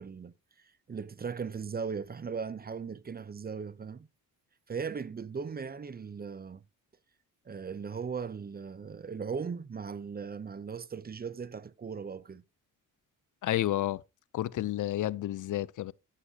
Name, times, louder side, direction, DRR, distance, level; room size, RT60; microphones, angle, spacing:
voice 1, 0.0-4.1 4.7-6.6 7.5-12.4, right 6 dB, 30° right, 0.6 m, -38 dB
voice 2, 13.4-14.0 14.3-15.9, left 14 dB, 65° left, 0.5 m, -30 dB
11.5 x 8.1 x 2.8 m
cardioid pair, 95°, 33 cm